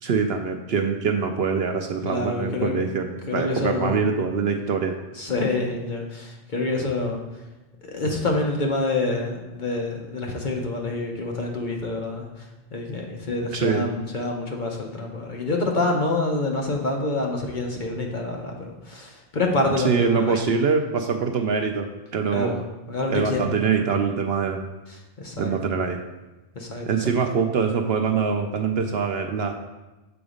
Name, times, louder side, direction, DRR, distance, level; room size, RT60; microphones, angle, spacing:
voice 1, 0.0-5.0 13.5-13.9 19.8-22.6 23.1-24.6 25.4-26.0 26.9-29.5, right 5 dB, 60° right, 4 dB, 0.7 m, -24 dB
voice 2, 2.0-2.8 3.3-4.0 5.1-7.2 7.8-20.5 22.3-23.5 24.9-25.5 26.5-27.2, left 2 dB, 45° left, 1 dB, 0.8 m, -27 dB
7.0 x 3.9 x 5.0 m, 1.1 s
omnidirectional pair, 1.3 m